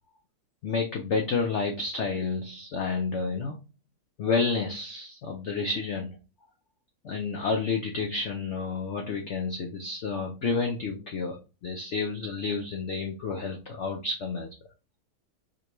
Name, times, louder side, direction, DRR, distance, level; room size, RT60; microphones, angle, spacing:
voice 1, 0.6-3.6 4.2-6.2 7.0-14.5, left 4 dB, 80° left, 2 dB, 0.6 m, -30 dB
4.9 x 2.3 x 2.9 m, 0.31 s
omnidirectional pair, 1.9 m